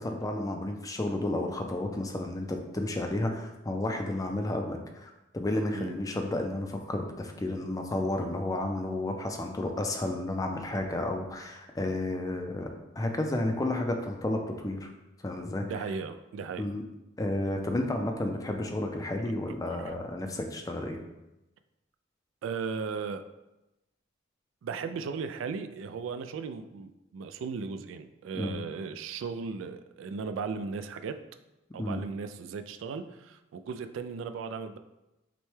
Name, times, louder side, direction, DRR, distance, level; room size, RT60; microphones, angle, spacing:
voice 1, 0.0-12.7 13.0-14.9 15.2-15.7 16.6-16.8 17.2-21.0 28.3-28.6 31.8-32.0, left 1 dB, 20° left, 4 dB, 0.4 m, -32 dB
voice 2, 15.6-16.6 19.2-19.3 19.7-19.9 22.4-23.2 24.6-31.2 31.7-34.8, right 5 dB, 80° right, 9 dB, 0.3 m, -36 dB
6.0 x 2.2 x 3.2 m, 0.96 s
head